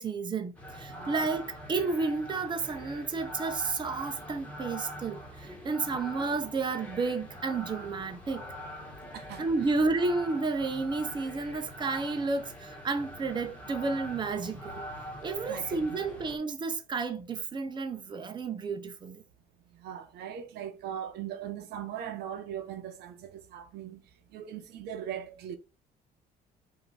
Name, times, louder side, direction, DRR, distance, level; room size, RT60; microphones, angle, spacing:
voice 1, 0.0-8.5 9.4-14.8 15.2-19.2, right 4 dB, 25° right, 0.7 m, -31 dB
sound 1, 0.5-16.4, left 1 dB, 10° left, 1.5 m, -44 dB
voice 2, 0.9-1.3 9.1-9.5 15.5-16.0 19.7-24.0 24.3-25.6, right 9 dB, 75° right, 0.7 m, -40 dB
4.9 x 2.7 x 4.0 m
cardioid pair, 110°, 17 cm